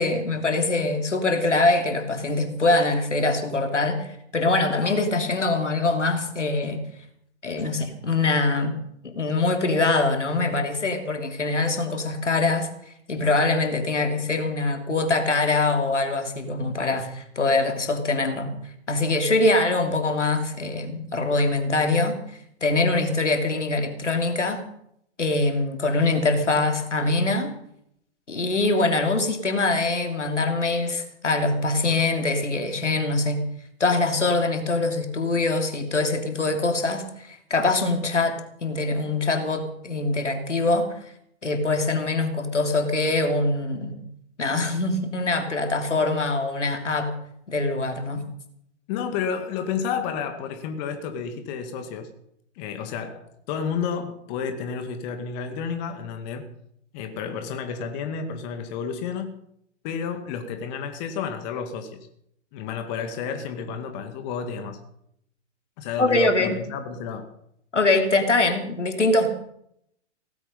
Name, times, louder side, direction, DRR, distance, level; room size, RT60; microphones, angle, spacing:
voice 1, 0.0-4.1 4.3-6.8 7.4-8.8 9.0-12.7 13.1-18.5 18.9-22.2 22.6-24.6 25.2-27.6 28.3-33.4 33.8-38.3 38.6-40.9 41.4-44.0 44.4-47.1 47.5-48.2 66.0-66.6 67.7-69.3, left 2 dB, 85° left, 3.1 m, -23 dB
voice 2, 48.9-52.1 52.6-56.5 56.9-59.4 59.8-62.1 62.5-64.8 65.8-67.4, left 6 dB, 35° left, 2.1 m, -31 dB
17.5 x 15.0 x 5.3 m
figure-of-eight pair, 115°, 35 cm